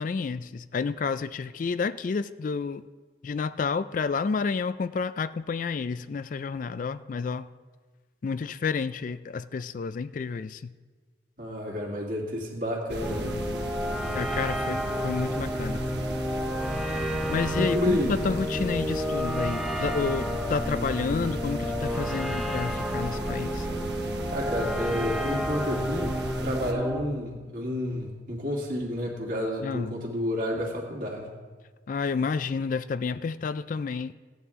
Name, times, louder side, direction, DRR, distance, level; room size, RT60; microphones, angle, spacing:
voice 1, 0.0-2.8 3.2-7.5 8.2-10.7 14.1-15.8 17.3-23.7 29.6-30.1 31.9-34.1, left 5 dB, 45° left, 14 dB, 0.3 m, -30 dB
voice 2, 11.4-13.5 17.6-18.2 24.3-31.3, left 1 dB, 50° right, -1 dB, 2.4 m, -30 dB
sound 1, 12.9-26.7, right 1 dB, 70° right, 1.1 m, -36 dB
sound 2, 13.0-27.0, equal, ahead, 0.7 m, -31 dB
17.0 x 9.4 x 3.7 m, 1.4 s
head